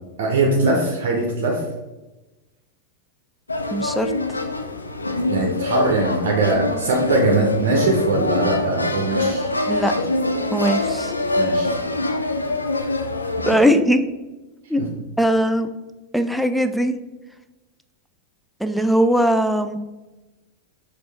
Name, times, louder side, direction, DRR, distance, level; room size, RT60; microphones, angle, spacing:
voice 1, 0.2-1.6 5.3-9.5 11.4-11.7 14.8-14.9, right 2 dB, 55° right, 0 dB, 0.6 m, -21 dB
sound 1, 3.5-13.7, left 2 dB, 80° left, 0.4 m, -24 dB
voice 2, 3.7-4.1 9.7-9.9 10.5-11.1 13.5-14.0 14.7-14.8 15.2-15.7 16.1-17.0 18.6-19.8, equal, ahead, 8 dB, 0.3 m, -19 dB
6.0 x 2.5 x 3.3 m, 1.1 s
figure-of-eight pair, 90°, 0 cm